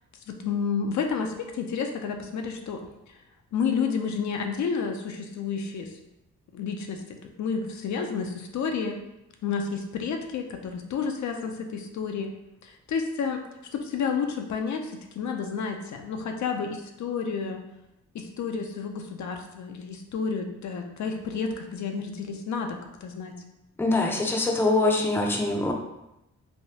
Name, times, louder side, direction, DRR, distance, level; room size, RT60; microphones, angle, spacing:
voice 1, 0.3-3.2 3.5-5.9 6.5-9.0 9.4-12.3 12.6-13.4 13.7-17.6 18.1-23.3, left 5 dB, 65° left, 4 dB, 0.4 m, -30 dB
voice 2, 23.8-25.7, left 2 dB, 5° left, 2 dB, 0.4 m, -23 dB
3.3 x 2.3 x 2.7 m, 0.88 s
cardioid pair, 75°, 31 cm